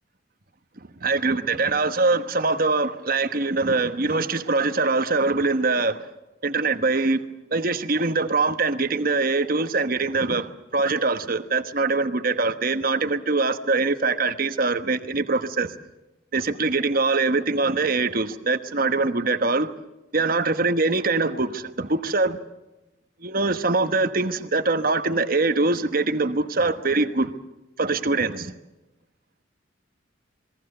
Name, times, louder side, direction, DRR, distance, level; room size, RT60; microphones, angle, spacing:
voice 1, 1.0-6.1 6.4-7.2 7.5-15.7 16.3-19.7 20.1-22.4 23.2-27.3 27.8-28.5, right 3 dB, 50° right, 10 dB, 1.2 m, -23 dB
28.0 x 21.5 x 6.7 m, 1.0 s
head